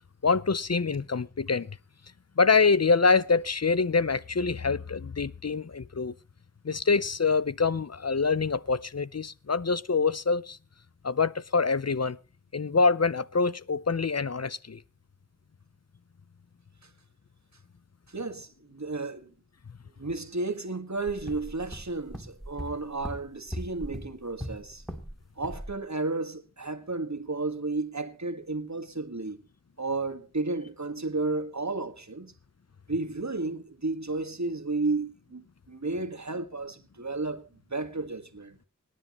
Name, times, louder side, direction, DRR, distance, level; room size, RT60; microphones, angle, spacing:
voice 1, 0.2-1.8 2.4-6.1 6.6-10.6 11.0-12.2 12.5-14.8, left 4 dB, 55° left, 0.6 m, -25 dB
voice 2, 18.1-19.3 20.0-24.8 25.4-29.4 29.8-32.3 32.9-38.6, right 3 dB, 60° right, 1.6 m, -33 dB
sound 1, 21.0-25.1 25.4-25.7, equal, ahead, 2.7 m, -39 dB
25.5 x 10.0 x 2.9 m
wide cardioid pair, 40°, 31 cm